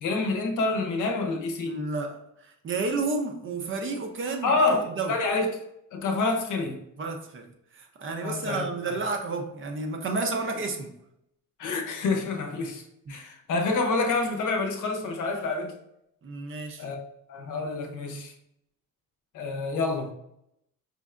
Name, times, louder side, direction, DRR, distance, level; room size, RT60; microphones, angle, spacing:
voice 1, 0.0-1.8 4.4-5.5 5.9-6.8 8.2-9.0 11.6-15.7 16.8-18.3 19.3-20.1, left 3 dB, 60° left, 4 dB, 0.7 m, -28 dB
voice 2, 1.7-5.2 7.0-7.5 7.7-10.9 13.1-13.2 16.2-16.9, right 3 dB, 35° right, 4 dB, 0.6 m, -31 dB
5.1 x 3.2 x 2.4 m, 0.79 s
cardioid pair, 150°, 34 cm